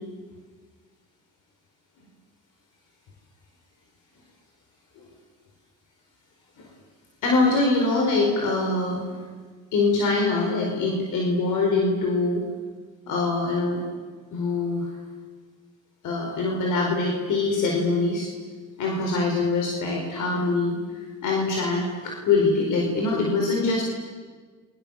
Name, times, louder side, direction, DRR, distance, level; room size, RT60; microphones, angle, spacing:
voice 1, 7.2-9.0 9.7-12.4 13.1-13.8 14.3-14.9 16.0-18.3 18.8-20.7 21.2-23.8, left 3 dB, 85° left, 0 dB, 4.8 m, -23 dB
30.0 x 24.0 x 7.2 m, 1.5 s
cardioid pair, 90°, 30 cm